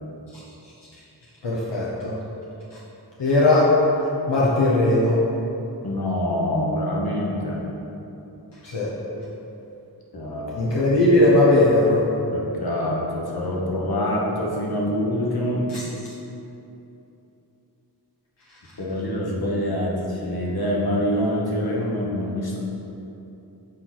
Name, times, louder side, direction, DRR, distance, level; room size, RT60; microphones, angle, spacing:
voice 1, 1.4-2.1 3.2-3.7 4.3-5.2 8.7-8.9 10.6-12.0 15.7-15.8, left 2 dB, 80° left, -6 dB, 0.9 m, -18 dB
voice 2, 5.8-7.6 10.1-10.7 12.3-15.7 18.8-22.6, left 1 dB, 60° left, -4 dB, 1.3 m, -25 dB
7.0 x 4.2 x 4.0 m, 2.9 s
wide cardioid pair, 45°, 42 cm